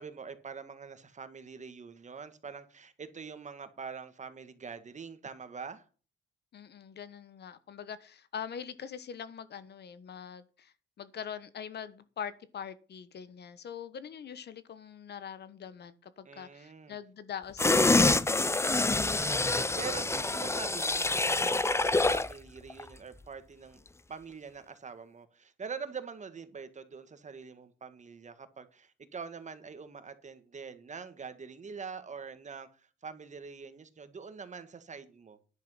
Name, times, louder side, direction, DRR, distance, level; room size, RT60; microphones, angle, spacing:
voice 1, 0.0-5.9 16.3-17.0 19.5-23.8 24.1-35.4, right 5 dB, 35° right, 1.8 m, -44 dB
voice 2, 6.5-18.6, left 8 dB, 55° left, 1.2 m, -43 dB
sound 1, 17.6-22.3 22.7-22.8, left 2 dB, 15° left, 0.7 m, -26 dB
10.5 x 7.6 x 5.7 m
cardioid pair, 90°, 20 cm